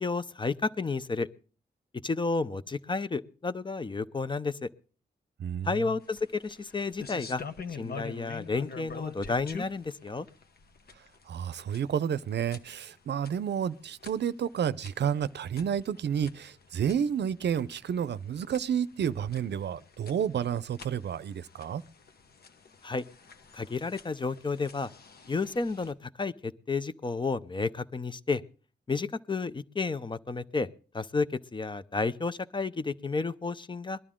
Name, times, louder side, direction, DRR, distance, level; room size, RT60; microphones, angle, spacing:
voice 1, 0.0-1.3 2.0-4.7 5.6-7.4 7.8-10.3 22.8-23.0 23.5-24.9 25.3-28.4 28.9-30.7 30.9-34.0, left 4 dB, 30° left, 0.6 m, -31 dB
voice 2, 5.4-5.7 11.3-21.8, right 8 dB, 80° right, 0.6 m, -30 dB
sound 1, 6.0-25.9, left 5 dB, 65° left, 1.2 m, -47 dB
21.0 x 12.0 x 3.7 m
wide cardioid pair, 130°, 17 cm